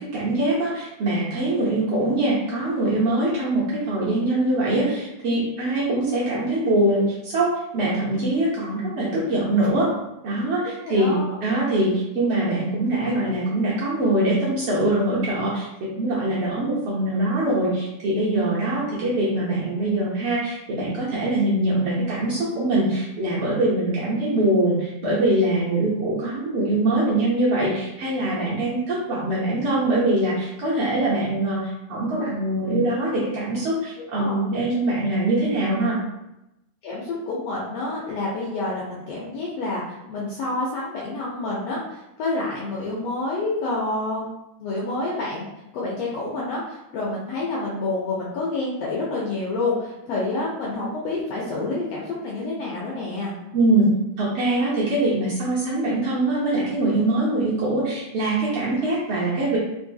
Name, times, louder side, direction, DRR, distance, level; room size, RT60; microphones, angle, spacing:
voice 1, 0.1-9.9 10.2-36.0 53.5-53.9 54.2-59.6, right 1 dB, 65° right, -7 dB, 1.5 m, -23 dB
voice 2, 10.6-11.3 34.2-34.4 36.8-44.2 44.6-45.5 45.7-53.3, left 2 dB, 75° left, -5 dB, 1.4 m, -28 dB
4.6 x 2.6 x 2.6 m, 0.90 s
omnidirectional pair, 3.3 m